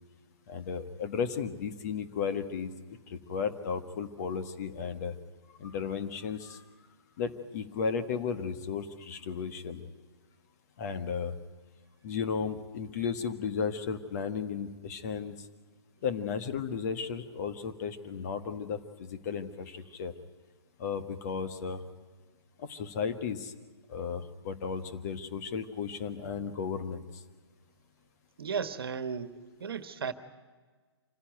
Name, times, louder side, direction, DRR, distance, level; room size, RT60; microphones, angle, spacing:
voice 1, 0.5-5.1 5.6-6.6 7.2-9.8 10.8-11.3 12.0-15.5 16.0-20.1 20.8-21.8 22.6-23.5 23.9-27.2, left 6 dB, 35° left, 8 dB, 1.5 m, -34 dB
voice 2, 28.4-30.1, right 6 dB, 55° right, 11 dB, 1.5 m, -35 dB
26.0 x 16.0 x 9.2 m, 1.4 s
figure-of-eight pair, 130°, 14 cm